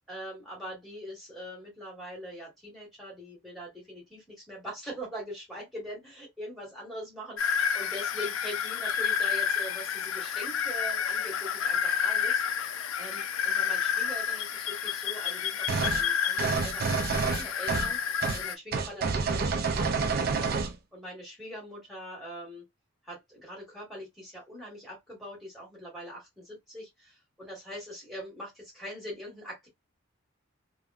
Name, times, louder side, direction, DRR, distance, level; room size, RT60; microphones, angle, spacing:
voice 1, 0.1-12.4 13.0-18.0 18.3-20.6 20.9-22.7 23.0-29.7, equal, ahead, 1.7 m, -42 dB
sound 1, 7.4-18.5, left 7 dB, 70° left, 0.4 m, -30 dB
sound 2, 15.7-16.0 16.4-17.9 18.2-18.4 18.7-20.7, right 4 dB, 45° right, 0.3 m, -28 dB
3.4 x 2.2 x 2.3 m
head